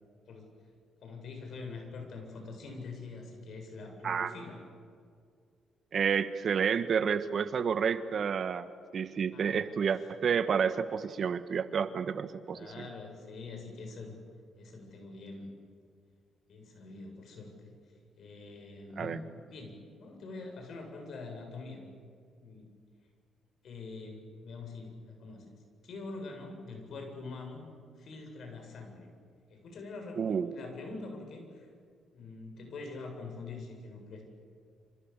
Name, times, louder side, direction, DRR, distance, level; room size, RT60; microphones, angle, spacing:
voice 1, 1.0-4.6 9.3-9.7 12.5-14.2 14.6-15.5 16.5-17.7 18.2-19.2 19.5-21.9 22.3-22.7 23.6-25.4 25.8-27.7 28.0-29.1 29.5-31.7 32.1-34.2, left 3 dB, 65° left, 3 dB, 8.0 m, -44 dB
voice 2, 5.9-8.7 8.9-12.9 19.0-19.2 30.2-30.6, right 6 dB, 55° right, 11 dB, 1.4 m, -30 dB
28.0 x 27.5 x 7.5 m, 2.2 s
cardioid pair, 90°, 0 cm